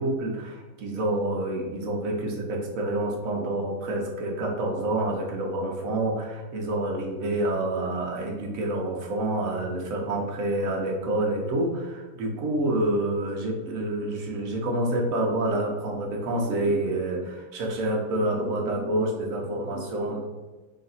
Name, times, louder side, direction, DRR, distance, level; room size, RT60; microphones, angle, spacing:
voice 1, 0.0-20.2, right 1 dB, 65° right, 0 dB, 1.2 m, -28 dB
3.9 x 2.5 x 4.0 m, 1.3 s
omnidirectional pair, 1.6 m